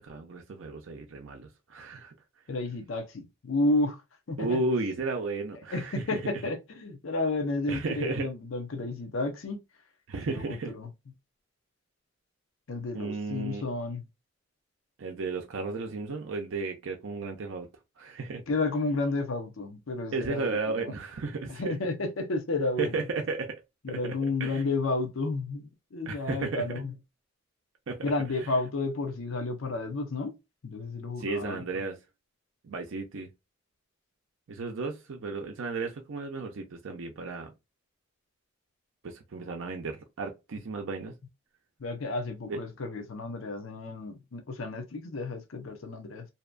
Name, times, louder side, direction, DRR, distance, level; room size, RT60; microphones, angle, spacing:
voice 1, 0.0-2.2 4.4-6.2 7.7-8.3 10.1-10.7 12.9-13.6 15.0-17.7 18.0-18.4 20.1-21.7 22.8-23.6 23.9-24.1 24.4-24.6 26.1-26.6 27.9-28.1 28.4-28.5 31.2-32.0 32.6-33.3 34.5-37.5 39.0-41.1 42.5-42.6, right 3 dB, 70° right, 0.5 m, -34 dB
voice 2, 2.5-4.0 4.3-4.6 5.7-9.6 10.3-10.9 12.7-14.0 18.5-20.9 21.5-22.9 23.8-26.9 28.0-30.4 30.6-31.6 41.8-46.3, left 2 dB, 75° left, 0.6 m, -31 dB
2.7 x 2.2 x 2.4 m
head